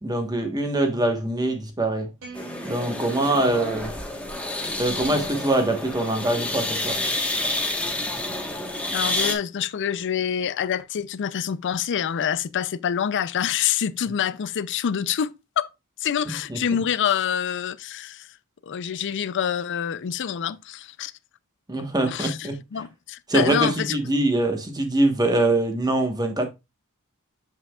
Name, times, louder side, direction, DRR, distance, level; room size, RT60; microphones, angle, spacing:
voice 1, 0.0-2.1 2.6-3.9 4.8-7.0 16.5-16.6 21.7-22.6 23.3-26.5, right 2 dB, 15° right, 1.2 m, -23 dB
sound 1, 2.2-4.6, right 5 dB, 65° right, 2.7 m, -45 dB
sound 2, 2.3-9.3, left 2 dB, 5° left, 1.2 m, -29 dB
voice 2, 8.9-15.7 16.0-18.3 18.6-21.1 22.0-24.0, left 8 dB, 55° left, 0.4 m, -26 dB
7.6 x 6.0 x 2.3 m
head